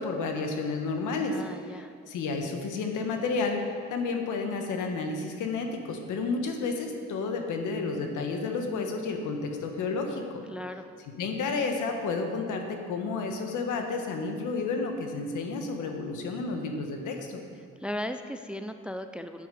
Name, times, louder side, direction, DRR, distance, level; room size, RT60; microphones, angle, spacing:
voice 1, 0.0-1.4 2.1-10.4 11.2-17.4, left 4 dB, 80° left, 4 dB, 1.4 m, -31 dB
voice 2, 1.3-1.9 10.5-10.9 17.8-19.5, equal, 5° right, 8 dB, 0.4 m, -36 dB
9.5 x 8.8 x 5.3 m, 2.2 s
cardioid pair, 90°, 30 cm